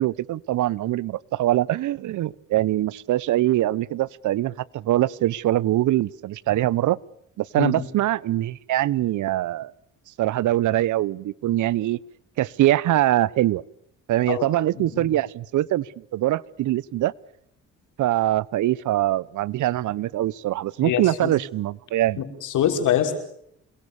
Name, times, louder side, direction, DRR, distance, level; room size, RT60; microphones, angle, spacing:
voice 1, 0.0-7.0 7.4-9.7 10.2-12.0 12.4-13.6 14.1-17.1 18.0-22.2, right 14 dB, 75° right, 0.9 m, -23 dB
voice 2, 14.8-15.1 20.8-21.3 22.2-23.2, left 10 dB, 80° left, 5.6 m, -25 dB
28.5 x 22.0 x 7.1 m
cardioid pair, 90°, 30 cm